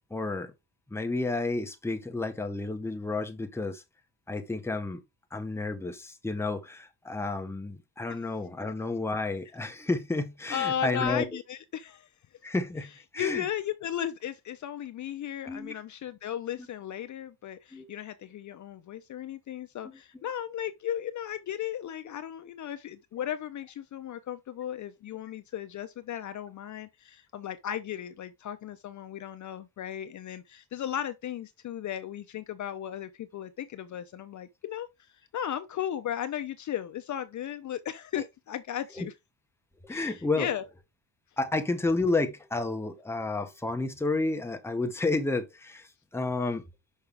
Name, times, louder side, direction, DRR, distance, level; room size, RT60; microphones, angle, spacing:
voice 1, 0.1-0.5 0.9-3.8 4.3-5.0 5.3-11.2 12.4-13.4 15.5-15.7 17.7-17.9 39.0-39.1 39.8-40.5 41.4-45.9 46.1-46.6, left 3 dB, 5° left, 0.9 m, -31 dB
voice 2, 10.5-12.1 13.2-34.9 35.3-39.1 39.9-40.7, left 10 dB, 45° left, 0.6 m, -35 dB
5.8 x 5.5 x 3.3 m
cardioid pair, 145°, 40 cm